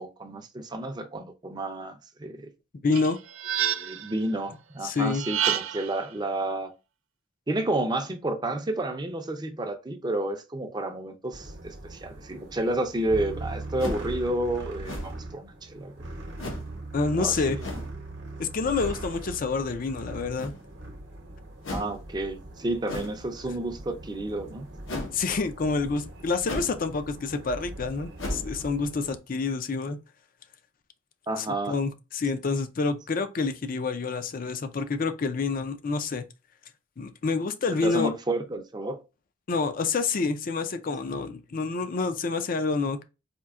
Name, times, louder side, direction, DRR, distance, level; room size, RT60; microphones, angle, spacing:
voice 1, 0.0-2.5 3.6-6.7 7.5-16.1 17.2-17.8 21.7-24.7 31.3-31.7 37.8-39.0, right 1 dB, 20° right, 0.5 m, -31 dB
voice 2, 2.8-3.2 4.8-5.3 16.9-17.6 18.4-20.5 25.1-30.0 31.4-36.2 37.0-38.1 39.5-43.0, left 4 dB, 45° left, 0.4 m, -28 dB
sound 1, 2.9-4.1 5.1-6.0, right 10 dB, 90° right, 0.4 m, -29 dB
sound 2, 11.3-29.2, right 2 dB, 65° right, 0.8 m, -40 dB
sound 3, 13.8-14.2 14.8-15.3 16.4-16.7 17.6-17.9 20.3-20.8 21.6-22.0 22.9-23.3 24.9-25.2 26.4-26.8 27.2-27.3 28.2-28.6, left 1 dB, 80° left, 0.9 m, -35 dB
4.3 x 2.7 x 2.4 m
head